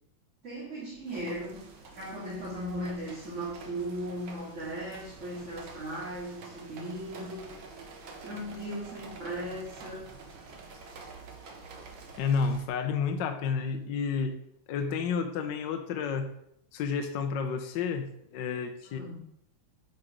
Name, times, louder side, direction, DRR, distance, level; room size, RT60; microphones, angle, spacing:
voice 1, 0.4-1.6 1.9-7.6 8.2-10.1 18.8-19.2, right 1 dB, 35° right, -7 dB, 2.6 m, -37 dB
sound 1, 1.1-12.7, right 3 dB, 85° right, 2.2 m, -48 dB
voice 2, 12.2-14.4 14.7-16.3 16.7-19.1, left 5 dB, 70° left, 6 dB, 1.3 m, -30 dB
9.7 x 5.7 x 5.0 m, 0.76 s
omnidirectional pair, 2.1 m